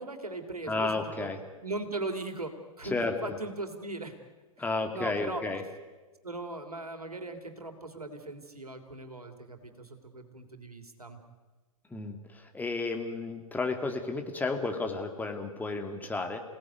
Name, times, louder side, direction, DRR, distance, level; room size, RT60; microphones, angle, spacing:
voice 1, 0.0-1.3 1.6-2.5 2.8-3.0 3.2-4.1 4.6-5.4 6.2-11.2, right 2 dB, 80° right, 6 dB, 3.4 m, -39 dB
voice 2, 0.7-1.4 2.9-3.1 4.6-5.6 11.9-12.2 12.5-16.4, left 3 dB, 10° left, 4 dB, 2.4 m, -32 dB
29.0 x 18.0 x 9.5 m, 1.3 s
figure-of-eight pair, 105°, 19 cm